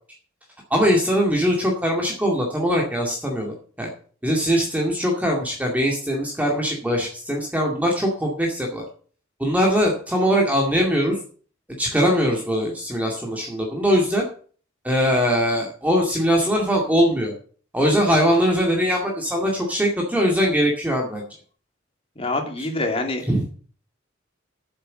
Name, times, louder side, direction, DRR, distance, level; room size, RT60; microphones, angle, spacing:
voice 1, 0.7-3.9 4.2-8.8 9.4-11.2 11.8-14.3 14.8-17.3 17.7-21.2 23.3-23.5, equal, 10° right, -1 dB, 2.2 m, -21 dB
voice 2, 22.2-23.2, left 2 dB, 30° left, 3 dB, 2.6 m, -25 dB
9.3 x 7.8 x 7.6 m, 0.43 s
head